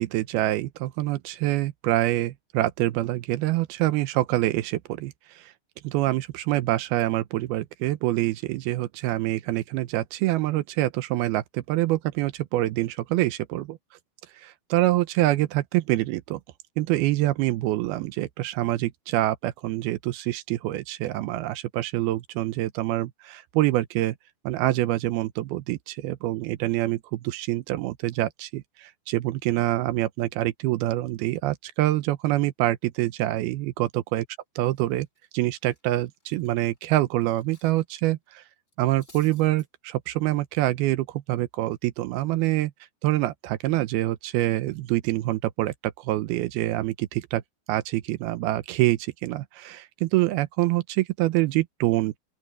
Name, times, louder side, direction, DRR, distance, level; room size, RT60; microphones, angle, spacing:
voice 1, 0.0-5.5 5.8-13.8 14.3-16.4 16.8-24.2 24.4-34.2 34.6-35.1 35.3-38.4 38.8-42.7 43.0-47.4 47.7-52.2, right 16 dB, 80° right, 2.4 m, -26 dB
Cutlery silverware, 34.1-34.4 34.7-37.8 38.1-38.3 38.7-39.7, left 2 dB, 15° left, 3.9 m, -58 dB
open air
omnidirectional pair, 5.1 m